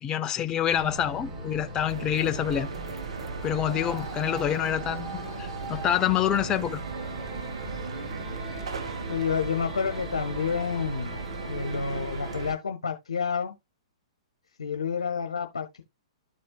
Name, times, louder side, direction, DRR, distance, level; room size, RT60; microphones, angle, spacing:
voice 1, 0.0-2.7 3.4-5.1 5.4-6.8, left 10 dB, 25° left, 0.6 m, -27 dB
sound 1, 0.7-12.5, right 2 dB, 35° right, 4.1 m, -38 dB
sound 2, 1.9-12.5, right 5 dB, 70° right, 1.1 m, -38 dB
voice 2, 9.1-13.5 14.6-15.8, left 6 dB, 85° left, 1.1 m, -29 dB
13.0 x 4.3 x 2.3 m
hypercardioid pair, 125°, 3 cm